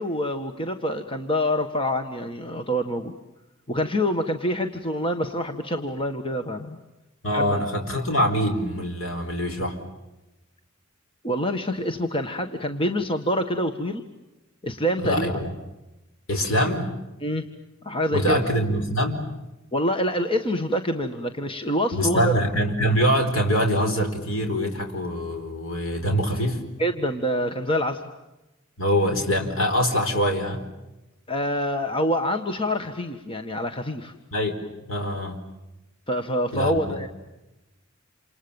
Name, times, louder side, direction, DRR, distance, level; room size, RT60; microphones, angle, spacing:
voice 1, 0.0-3.1 3.7-6.8 7.3-7.6 11.2-14.0 14.6-15.4 17.2-17.4 17.8-18.4 19.7-22.4 26.8-28.0 31.3-34.1 36.1-37.1, equal, 25° left, 6 dB, 1.6 m, -26 dB
voice 2, 7.2-9.8 15.0-15.5 16.3-16.9 18.1-19.3 21.9-26.6 28.8-30.6 34.3-34.6 34.9-35.4 36.5-37.0, equal, 85° left, 5 dB, 4.7 m, -24 dB
28.5 x 28.0 x 7.1 m, 1.0 s
head